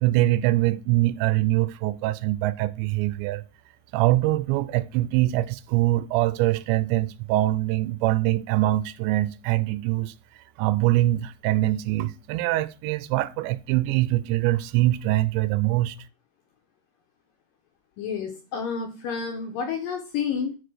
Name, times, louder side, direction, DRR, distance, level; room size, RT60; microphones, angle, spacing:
voice 1, 0.0-3.4 3.9-10.1 10.6-16.0, right 16 dB, 90° right, 2.9 m, -23 dB
voice 2, 18.0-20.6, left 6 dB, 70° left, 2.2 m, -30 dB
9.6 x 4.8 x 6.3 m
omnidirectional pair, 5.0 m